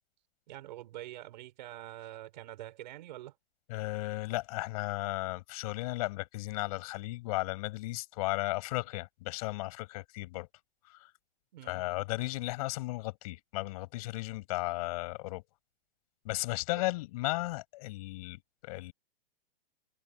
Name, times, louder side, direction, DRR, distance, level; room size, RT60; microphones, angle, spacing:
voice 1, 0.5-3.3 11.5-11.9, right 14 dB, 45° right, 5.4 m, -45 dB
voice 2, 3.7-10.5 10.9-11.1 11.6-15.4 16.2-18.9, left 21 dB, 35° left, 7.0 m, -35 dB
hypercardioid pair, 165°, 31 cm